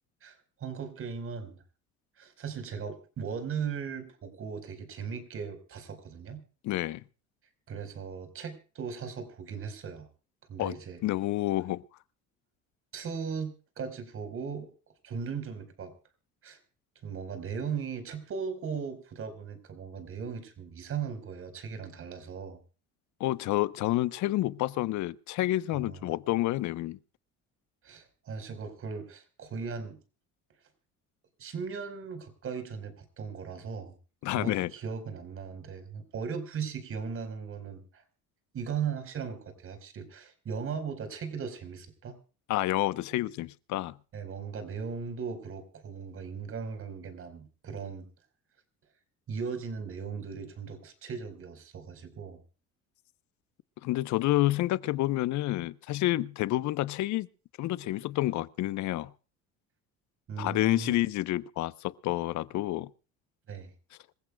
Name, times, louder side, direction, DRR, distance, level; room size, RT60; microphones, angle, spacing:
voice 1, 0.2-1.6 2.2-6.4 7.7-10.1 10.5-11.0 12.9-14.7 15.0-15.9 16.4-16.6 17.0-22.6 25.7-26.1 27.8-30.0 31.4-33.9 34.3-38.0 38.5-42.1 44.1-48.1 49.3-52.4 60.3-60.9 63.5-63.7, right 6 dB, 45° right, 4.7 m, -38 dB
voice 2, 6.6-7.0 10.6-10.8 11.0-11.8 23.2-27.0 34.2-34.7 42.5-44.0 53.8-57.3 57.6-59.1 60.4-62.9, left 16 dB, 65° left, 0.9 m, -29 dB
26.5 x 15.5 x 2.3 m
cardioid pair, 120°, 31 cm